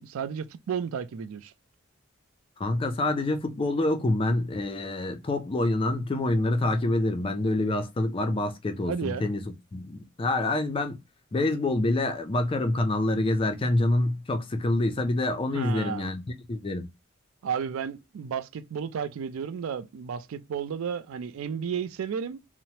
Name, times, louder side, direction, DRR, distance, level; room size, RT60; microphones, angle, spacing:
voice 1, 0.0-1.5 8.9-9.3 15.5-16.1 17.4-22.4, right 7 dB, 80° right, 0.3 m, -33 dB
voice 2, 2.6-9.4 9.7-11.0 11.3-16.2 16.5-16.9, left 2 dB, 25° left, 0.4 m, -26 dB
3.0 x 2.0 x 2.8 m
head